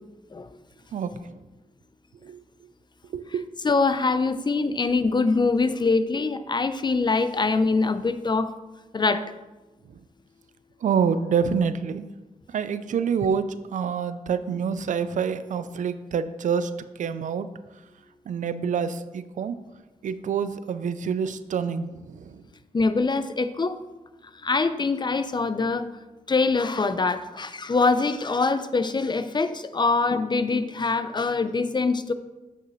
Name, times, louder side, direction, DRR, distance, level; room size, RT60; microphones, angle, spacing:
voice 1, 3.1-3.4 10.8-12.1 12.5-16.7 17.0-17.5 18.3-19.6 20.0-22.4, right 6 dB, 70° right, 13 dB, 0.4 m, -27 dB
voice 2, 3.6-8.5 8.9-9.2 22.7-23.8 24.4-25.9 26.3-32.1, left 3 dB, 35° left, 11 dB, 0.5 m, -24 dB
8.3 x 5.6 x 3.1 m, 1.1 s
cardioid pair, 55°, 13 cm